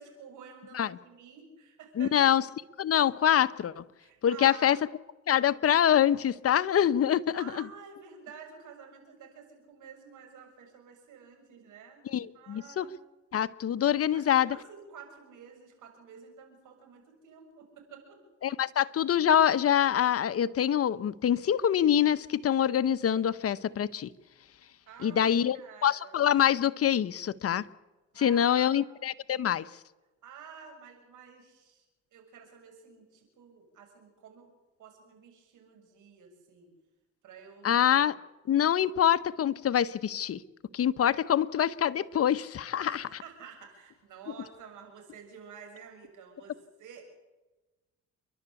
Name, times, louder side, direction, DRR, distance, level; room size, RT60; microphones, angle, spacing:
voice 1, 0.0-2.3 4.0-4.8 7.3-12.0 12.3-12.9 14.1-18.2 24.9-26.2 28.1-28.9 30.2-31.8 32.1-34.5 34.8-36.7 37.2-38.1 42.8-47.1, right 6 dB, 80° right, 4 dB, 7.1 m, -50 dB
voice 2, 2.0-2.4 2.8-3.8 4.2-4.8 5.3-7.4 12.1-12.8 13.3-14.6 18.4-24.1 25.0-25.6 25.8-27.6 28.2-29.7 37.6-38.1 38.5-40.4 40.7-43.0, left 9 dB, 50° left, 15 dB, 0.9 m, -25 dB
29.0 x 12.0 x 8.3 m, 1.1 s
cardioid pair, 90°, 30 cm